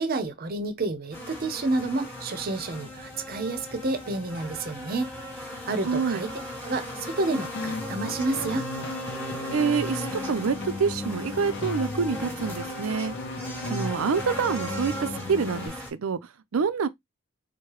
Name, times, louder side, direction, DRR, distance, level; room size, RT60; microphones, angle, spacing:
voice 1, 0.0-5.1 5.6-6.3 6.6-8.6, right 2 dB, 45° right, 0.7 m, -29 dB
sound 1, 1.1-15.9, left 1 dB, 10° left, 1.2 m, -37 dB
voice 2, 5.8-6.2 9.5-13.2 13.7-16.2 16.5-16.9, right 5 dB, 85° right, 0.5 m, -27 dB
sound 2, 7.6-15.7, left 2 dB, 55° left, 0.6 m, -36 dB
4.7 x 2.1 x 3.0 m
head